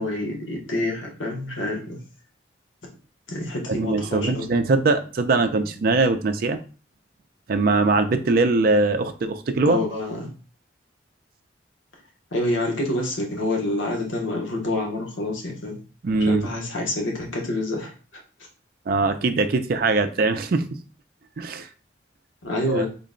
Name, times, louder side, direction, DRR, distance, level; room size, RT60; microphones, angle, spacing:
voice 1, 0.0-2.0 3.3-4.5 9.6-10.3 12.3-15.8 16.3-17.9 22.4-22.9, left 1 dB, 85° left, 0 dB, 1.0 m, -27 dB
voice 2, 3.7-6.6 7.5-9.8 16.0-16.5 18.9-20.7 21.4-21.7 22.7-22.9, right 3 dB, 50° right, 8 dB, 0.4 m, -21 dB
3.7 x 2.1 x 3.7 m, 0.36 s
head